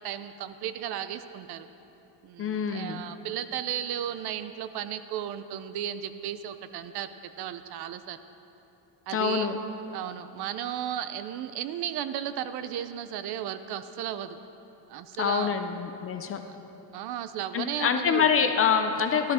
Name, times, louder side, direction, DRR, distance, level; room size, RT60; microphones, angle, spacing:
voice 1, 0.0-1.7 2.2-8.2 9.1-9.5 9.9-14.4 14.9-15.6 16.4-16.5 16.9-18.3, right 10 dB, 60° right, 11 dB, 0.6 m, -34 dB
voice 2, 2.4-3.0 9.1-9.5 15.2-16.4 17.5-19.3, left 7 dB, 30° left, 6 dB, 0.4 m, -25 dB
15.0 x 12.0 x 4.2 m, 3.0 s
cardioid pair, 180°, 44 cm